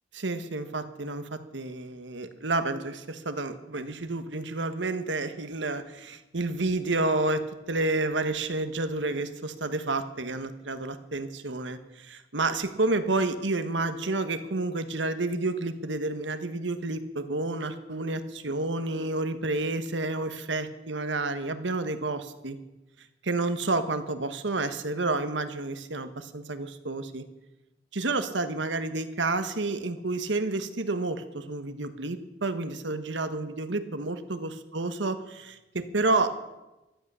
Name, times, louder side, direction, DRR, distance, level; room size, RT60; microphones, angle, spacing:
voice 1, 0.1-22.6 23.2-27.2 27.9-36.3, right 2 dB, 80° right, 10 dB, 1.3 m, -30 dB
15.5 x 12.5 x 6.9 m, 1.0 s
head